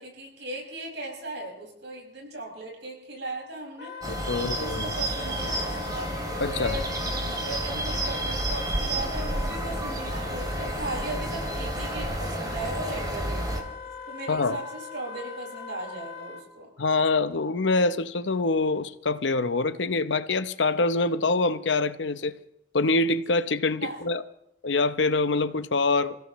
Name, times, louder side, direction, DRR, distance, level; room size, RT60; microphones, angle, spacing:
voice 1, 0.0-3.9 4.3-6.1 6.5-13.7 14.1-16.7 23.8-24.0, right 2 dB, 70° right, 5.8 m, -37 dB
Wind instrument woodwind instrument, 3.8-16.4, left 6 dB, 65° left, 2.9 m, -40 dB
sound 1, 4.0-13.6, right 1 dB, 20° right, 2.8 m, -31 dB
voice 2, 4.1-4.9 6.4-6.8 14.3-14.6 16.8-22.4 22.7-24.2 24.6-26.2, left 3 dB, 85° left, 0.8 m, -25 dB
28.5 x 16.5 x 3.1 m
head